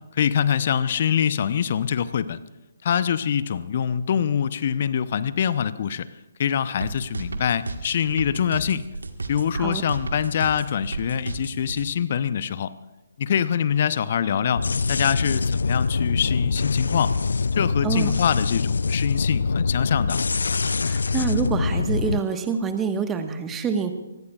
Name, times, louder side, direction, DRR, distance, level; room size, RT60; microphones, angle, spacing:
voice 1, 0.1-2.4 2.8-6.1 6.4-8.8 9.3-12.7 13.2-17.1 17.6-20.2, left 8 dB, 45° left, 15 dB, 0.8 m, -24 dB
sound 1, 6.8-11.8, right 3 dB, 75° right, 1.6 m, -32 dB
sound 2, 14.6-22.2, left 4 dB, 65° left, 0.4 m, -24 dB
voice 2, 20.9-23.9, right 6 dB, 15° right, 7 dB, 1.4 m, -26 dB
24.5 x 20.0 x 2.4 m, 1.0 s
figure-of-eight pair, 135°, 0 cm